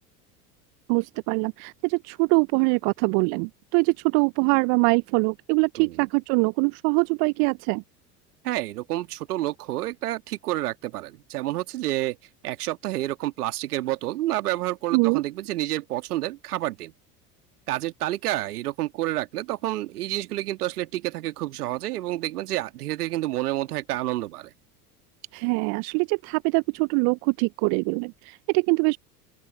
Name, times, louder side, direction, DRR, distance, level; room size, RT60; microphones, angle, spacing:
voice 1, 0.9-7.8 14.9-15.2 25.3-29.0, right 37 dB, 50° right, 0.8 m, -23 dB
voice 2, 5.8-6.1 8.4-12.2 12.4-16.9 17.7-24.5, right 15 dB, 70° right, 2.1 m, -29 dB
open air
figure-of-eight pair, 75°, 48 cm